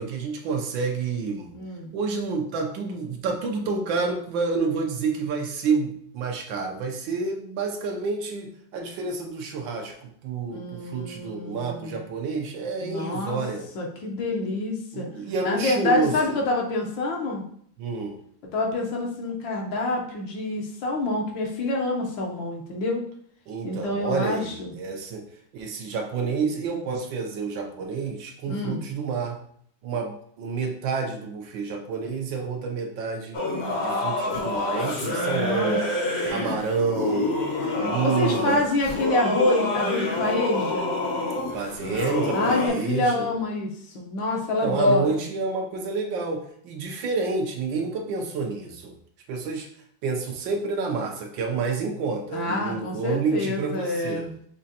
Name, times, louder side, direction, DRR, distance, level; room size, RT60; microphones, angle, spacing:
voice 1, 0.0-1.5 1.9-13.7 14.9-16.1 17.8-18.2 23.5-25.2 25.5-29.4 29.8-33.4 33.8-35.8 36.3-37.3 37.8-38.6 41.5-43.3 44.6-48.9 49.3-49.7 50.0-54.3, right 4 dB, 70° right, 2 dB, 1.3 m, -29 dB
voice 2, 1.5-1.9 10.5-12.0 12.8-13.4 13.7-15.1 15.4-17.4 18.5-23.0 23.6-24.7 28.5-28.8 35.1-35.8 36.3-36.5 38.0-40.9 42.3-45.2 52.3-54.3, left 2 dB, 70° left, 0 dB, 1.6 m, -27 dB
Singing / Musical instrument, 33.3-42.7, left 2 dB, 45° left, 0.9 m, -27 dB
6.2 x 3.0 x 2.8 m, 0.63 s
omnidirectional pair, 2.2 m